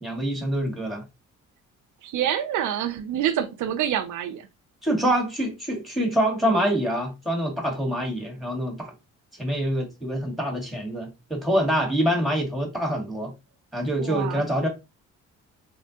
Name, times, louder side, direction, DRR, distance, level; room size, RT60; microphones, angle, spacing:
voice 1, 0.0-1.0 4.8-8.9 9.3-13.3 13.7-14.7, equal, ahead, 1.6 m, -25 dB
voice 2, 2.0-4.5 14.0-14.4, right 10 dB, 75° right, 0.5 m, -27 dB
4.3 x 2.1 x 2.8 m
cardioid pair, 90°, 30 cm